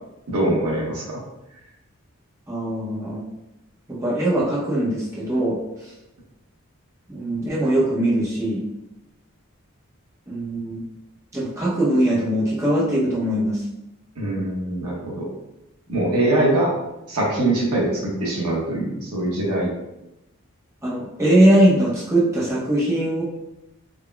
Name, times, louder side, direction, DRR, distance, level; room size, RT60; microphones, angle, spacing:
voice 1, 0.3-1.2 14.2-15.2 15.9-16.7 17.1-17.9 18.2-19.7, right 1 dB, 85° right, -4 dB, 1.0 m, -22 dB
voice 2, 2.5-3.2 3.9-5.9 7.1-8.6 10.3-10.9 11.3-13.6 20.8-23.2, right 1 dB, 15° right, -7 dB, 0.6 m, -21 dB
3.7 x 2.0 x 2.2 m, 0.92 s
head